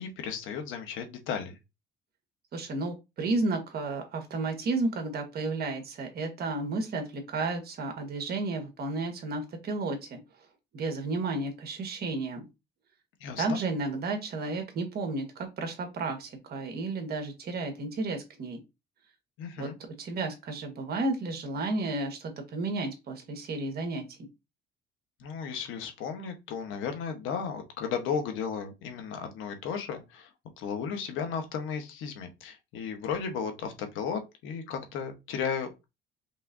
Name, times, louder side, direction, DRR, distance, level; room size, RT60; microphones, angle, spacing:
voice 1, 0.0-1.6 13.2-13.6 19.4-19.8 25.2-30.3 30.6-35.9, left 6 dB, 80° left, 1.1 m, -34 dB
voice 2, 2.5-10.2 10.7-12.4 13.4-18.6 19.6-19.7 20.0-24.2, right 3 dB, 50° right, 1.5 m, -32 dB
5.3 x 3.3 x 2.6 m
cardioid pair, 110°, 20 cm